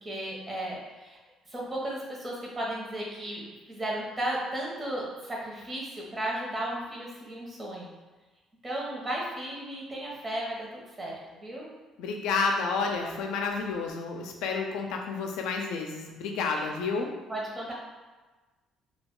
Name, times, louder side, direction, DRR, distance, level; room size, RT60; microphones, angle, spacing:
voice 1, 0.0-1.2 1.5-3.4 3.7-7.9 8.6-10.7 11.0-11.7 16.6-16.7 17.3-17.7, right 1 dB, 25° right, -3 dB, 0.9 m, -34 dB
voice 2, 12.0-17.1, left 4 dB, 85° left, 2 dB, 0.4 m, -30 dB
2.3 x 2.3 x 3.6 m, 1.3 s
cardioid pair, 90°, 0 cm